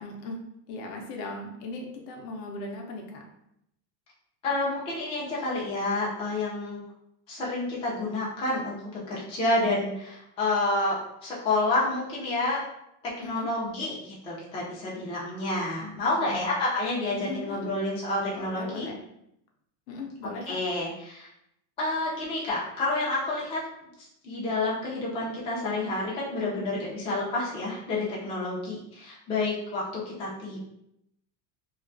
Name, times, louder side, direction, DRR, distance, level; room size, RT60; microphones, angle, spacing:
voice 1, 0.0-3.2 13.2-13.5 16.2-16.4 17.1-17.6 18.4-19.0 19.9-20.6, left 2 dB, 65° left, 1 dB, 0.7 m, -38 dB
voice 2, 4.4-6.8 7.3-12.6 13.0-18.9 20.5-21.3 21.8-23.6 24.2-30.6, left 2 dB, 15° left, -6 dB, 0.3 m, -29 dB
2.3 x 2.3 x 2.5 m, 0.78 s
supercardioid pair, 135°, 48 cm